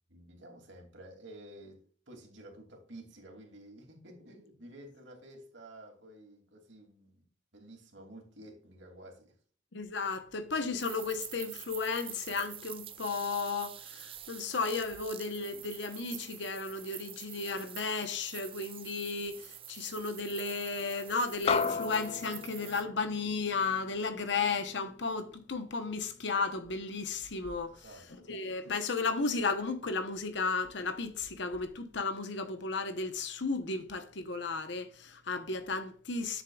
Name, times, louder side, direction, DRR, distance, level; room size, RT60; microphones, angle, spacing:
voice 1, 0.1-1.8 2.1-7.3 7.5-9.3 27.6-28.4, right 1 dB, 70° right, 2.6 m, -51 dB
voice 2, 9.7-27.7 28.3-36.4, left 4 dB, 65° left, 1.0 m, -34 dB
sound 1, 10.8-22.8, right 10 dB, 30° right, 0.5 m, -47 dB
sound 2, 21.5-26.1, left 5 dB, 30° left, 0.3 m, -36 dB
10.5 x 7.3 x 2.4 m
head